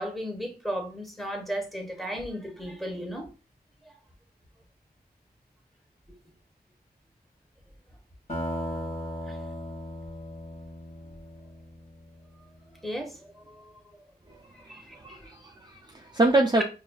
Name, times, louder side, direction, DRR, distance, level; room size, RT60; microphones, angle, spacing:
voice 1, 0.0-3.3 3.8-3.9 9.3-9.4 12.8-13.7 14.5-14.9, equal, ahead, 1.1 m, -35 dB
sound 1, 8.3-12.6, left 1 dB, 45° left, 1.5 m, -37 dB
voice 2, 14.3-16.6, right 2 dB, 25° right, 0.5 m, -26 dB
5.1 x 2.6 x 2.3 m
wide cardioid pair, 60°, 17 cm